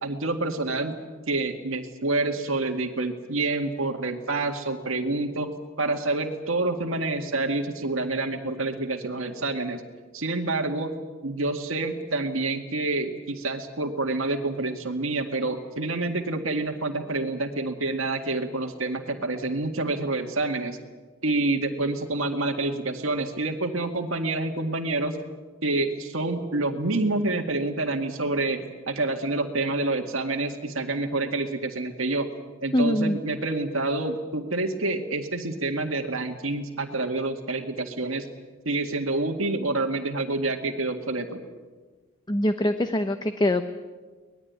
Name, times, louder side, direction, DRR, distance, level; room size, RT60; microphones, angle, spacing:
voice 1, 0.0-1.0 1.3-5.5 5.8-9.8 10.1-10.9 11.2-20.8 21.2-25.2 25.6-32.3 32.6-38.3 38.7-41.4, right 2 dB, 70° right, 3 dB, 2.0 m, -27 dB
voice 2, 32.7-33.2 42.3-43.7, left 1 dB, 20° left, 9 dB, 0.9 m, -23 dB
24.0 x 20.0 x 9.5 m, 1.3 s
head